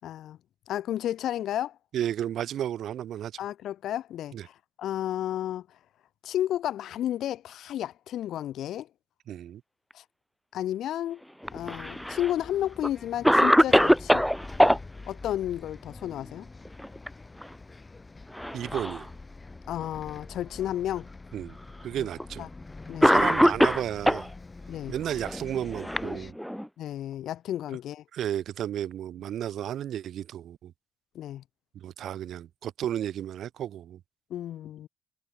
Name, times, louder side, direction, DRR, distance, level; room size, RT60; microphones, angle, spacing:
voice 1, 0.0-0.4 0.7-1.8 3.4-5.7 6.2-8.9 9.9-10.0 10.5-11.2 11.5-14.2 15.1-16.5 19.7-21.1 22.0-22.1 22.4-22.5 22.9-23.3 24.7-24.9 26.8-28.0 31.1-31.4 34.3-34.9, left 12 dB, 75° left, 3.7 m, -32 dB
voice 2, 1.9-3.3 4.3-4.5 9.3-9.6 18.5-19.1 21.3-21.6 21.8-22.5 23.0-24.3 24.9-26.3 28.1-30.7 31.7-34.0, right 10 dB, 70° right, 0.9 m, -33 dB
Bus, 11.4-26.3, left 3 dB, 25° left, 4.0 m, -45 dB
Cough, 11.4-12.3 12.8-12.9 13.2-14.8 16.6-17.1 17.4-17.5 18.3-19.0 19.8-19.9 21.0-21.1 22.2-22.4 23.0-24.3 25.2-26.7, equal, ahead, 0.3 m, -22 dB
cardioid pair, 90°, 0 cm